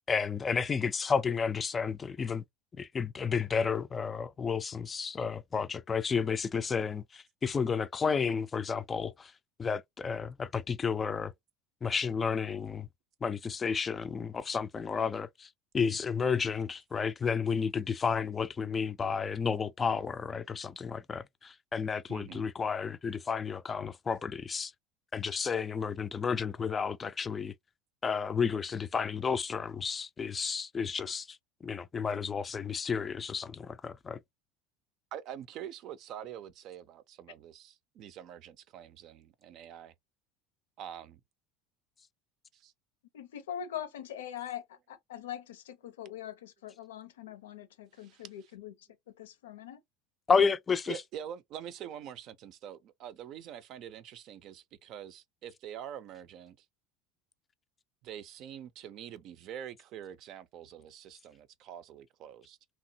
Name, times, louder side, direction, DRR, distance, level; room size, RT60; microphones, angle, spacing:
voice 1, 0.1-2.4 2.8-9.3 9.6-11.3 11.8-12.9 13.2-15.5 15.7-24.7 25.1-27.5 28.0-31.3 31.6-34.2 50.3-51.0, left 6 dB, 25° left, 0.3 m, -31 dB
voice 2, 22.1-22.4 35.1-39.9 40.8-41.2 42.5-42.7 47.9-48.3 50.9-56.6 58.0-62.6, right 10 dB, 55° right, 0.5 m, -45 dB
voice 3, 43.1-49.8, left 10 dB, 80° left, 0.6 m, -43 dB
2.9 x 2.0 x 2.7 m
hypercardioid pair, 80°, 0 cm